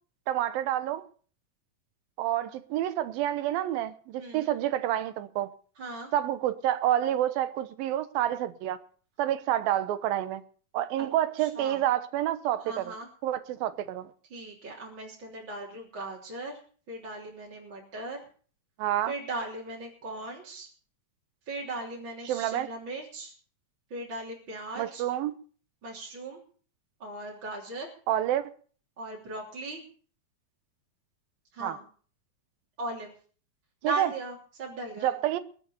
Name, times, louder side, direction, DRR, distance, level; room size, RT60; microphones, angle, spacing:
voice 1, 0.3-1.0 2.2-5.5 6.1-8.8 9.2-10.4 10.7-12.9 13.2-14.1 18.8-19.1 22.3-22.7 24.8-25.3 28.1-28.5 31.6-31.8 33.8-34.1 35.0-35.4, right 12 dB, 80° right, 2.7 m, -28 dB
voice 2, 4.2-4.5 5.8-6.1 11.0-11.1 11.4-11.8 12.6-13.1 14.3-16.6 16.9-18.2 19.1-20.7 21.5-23.3 23.9-25.0 25.8-26.4 27.0-27.9 29.0-29.9 31.5-31.8 32.8-33.1 33.8-35.1, right 2 dB, 35° right, 3.7 m, -38 dB
21.5 x 7.8 x 7.0 m
omnidirectional pair, 4.2 m